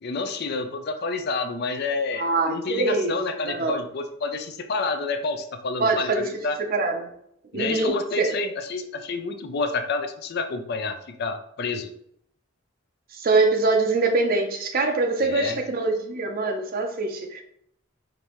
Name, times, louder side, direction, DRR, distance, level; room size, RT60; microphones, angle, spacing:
voice 1, 0.0-6.6 7.5-11.9 15.2-15.6, left 3 dB, 55° left, 7 dB, 0.5 m, -29 dB
voice 2, 2.2-3.1 3.4-3.8 5.8-6.3 6.7-7.1 7.5-8.3 13.1-17.4, right 3 dB, 50° right, 5 dB, 0.6 m, -24 dB
5.1 x 2.7 x 3.0 m, 0.71 s
head